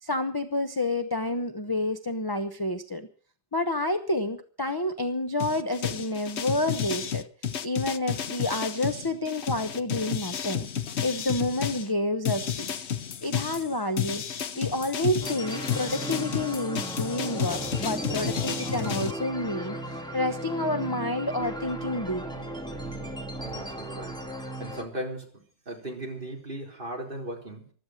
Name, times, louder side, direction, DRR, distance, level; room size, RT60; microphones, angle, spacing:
voice 1, 0.0-3.1 3.5-7.2 7.6-10.7 11.0-12.8 13.2-14.2 14.5-22.2, left 1 dB, 20° left, 9 dB, 0.6 m, -29 dB
sound 1, 5.4-11.9 12.2-19.1, left 8 dB, 50° left, 0.8 m, -32 dB
sound 2, 15.2-24.8, right 1 dB, ahead, 2.2 m, -36 dB
voice 2, 23.4-27.7, right 1 dB, 30° right, 1 dB, 4.1 m, -38 dB
15.0 x 12.5 x 6.5 m, 0.43 s
omnidirectional pair, 1.9 m